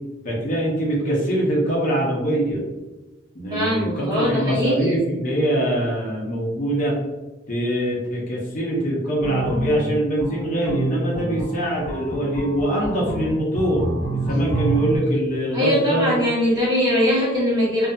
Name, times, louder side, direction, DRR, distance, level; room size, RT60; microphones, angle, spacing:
voice 1, 0.2-2.6 3.3-6.9 7.5-13.8 14.1-16.1, right 1 dB, 45° left, -3 dB, 0.7 m, -23 dB
voice 2, 3.5-5.0 15.5-17.9, equal, 20° right, -8 dB, 1.2 m, -21 dB
sound 1, 9.2-15.0, right 2 dB, 65° right, 0.9 m, -27 dB
2.6 x 2.5 x 2.3 m, 1.1 s
head